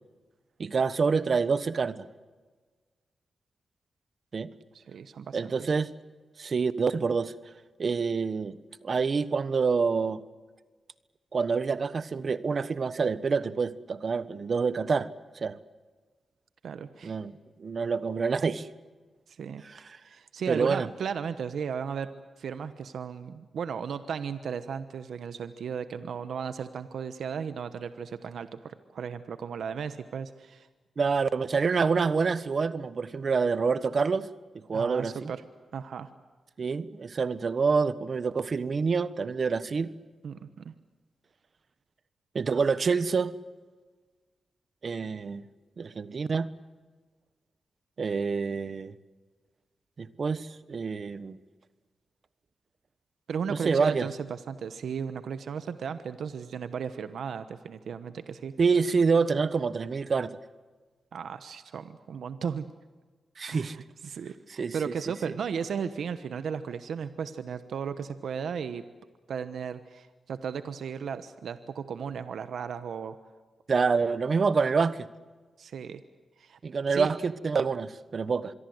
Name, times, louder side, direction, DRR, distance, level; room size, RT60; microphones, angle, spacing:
voice 1, 0.6-2.1 4.3-4.5 5.3-5.9 6.4-7.3 7.8-8.5 8.8-10.2 11.3-15.1 15.3-15.6 17.0-17.3 17.6-18.7 19.6-20.0 20.5-20.9 31.0-34.3 34.5-35.3 36.6-39.9 42.3-43.3 44.8-45.4 45.8-46.5 48.0-48.9 50.0-51.4 53.5-54.1 58.6-60.3 63.4-63.8 64.6-64.7 65.2-65.3 73.7-75.1 76.6-78.5, right 5 dB, 55° right, 15 dB, 1.2 m, -27 dB
voice 2, 4.7-5.7 16.6-17.2 19.3-19.6 20.0-22.1 22.4-30.7 34.7-35.4 35.7-36.1 40.2-40.7 53.3-58.5 61.1-62.7 63.5-68.9 69.3-73.2 75.6-76.0 76.4-76.6 76.9-77.1, right 7 dB, 80° right, 11 dB, 1.1 m, -35 dB
26.0 x 22.5 x 8.0 m, 1.4 s
cardioid pair, 75°, 0 cm